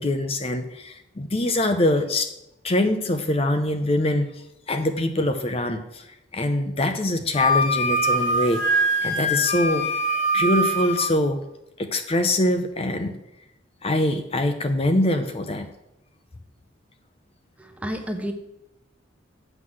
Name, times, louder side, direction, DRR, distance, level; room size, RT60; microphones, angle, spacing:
voice 1, 0.0-2.3 2.6-6.1 6.3-9.9 10.3-11.4 11.8-13.2 13.8-15.7, left 1 dB, 30° left, 7 dB, 0.7 m, -24 dB
Wind instrument woodwind instrument, 7.3-11.1, equal, 80° left, 2.3 m, -23 dB
voice 2, 17.6-18.3, equal, 5° right, 5 dB, 0.9 m, -30 dB
8.1 x 5.6 x 7.6 m, 0.87 s
head